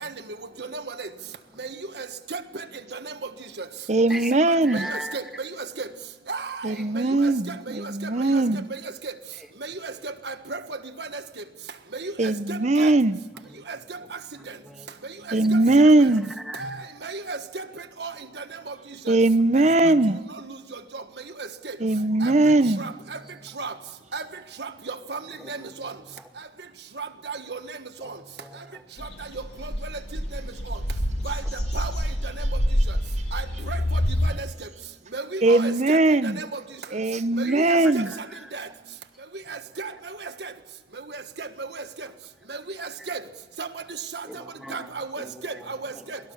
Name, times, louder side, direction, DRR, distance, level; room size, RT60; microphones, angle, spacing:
voice 1, 0.6-1.1 1.6-1.7 2.0-2.6 2.9-3.1 4.4-4.5 4.7-5.5 5.8-5.9 6.3-7.3 8.0-8.4 9.0-9.1 9.6-10.6 11.0-11.1 11.9-12.9 13.7-14.0 15.5-15.6 16.6-17.6 18.0-18.1 18.4-18.7 19.1-19.2 20.9-21.0 21.4-21.7 22.2-22.3 22.8-23.2 23.6-23.7 24.1-24.2 24.6-25.2 25.5-25.9 27.0-27.6 28.0-28.1 29.0-29.1 31.2-31.4 31.7-31.9 33.3-34.5 35.1-36.0 36.2-36.6 37.4-38.2 38.5-38.7 39.5-39.9 40.2-40.5 41.1-41.8 42.5-43.2 43.6-43.7 44.1-44.2 44.7-46.2, right 4 dB, 65° right, 1.5 m, -34 dB
voice 2, 3.9-4.9 6.6-8.7 12.2-13.2 15.3-16.3 19.1-20.2 21.8-22.8 35.4-36.4 36.9-38.1, right 2 dB, 40° right, 0.8 m, -20 dB
voice 3, 4.7-5.2 14.4-14.9 16.5-16.7 25.4-25.5 28.0-28.1 28.4-28.8 37.8-38.2 44.3-44.9 45.2-45.3, equal, ahead, 2.2 m, -37 dB
sound 1, 29.0-34.3, equal, 65° left, 3.3 m, -26 dB
27.5 x 19.5 x 7.2 m
head